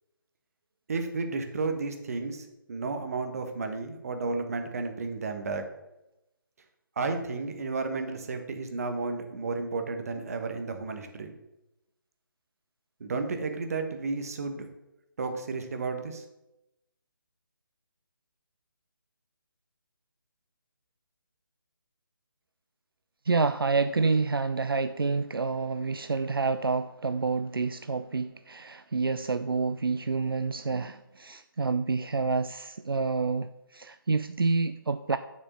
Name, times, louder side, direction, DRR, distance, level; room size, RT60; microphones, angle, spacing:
voice 1, 0.9-5.6 7.0-11.4 13.0-14.7 15.2-16.2, right 3 dB, 40° right, 6 dB, 1.2 m, -32 dB
voice 2, 23.3-35.2, right 4 dB, 80° right, 11 dB, 0.4 m, -28 dB
7.3 x 5.0 x 7.2 m, 0.93 s
figure-of-eight pair, 150°, 12 cm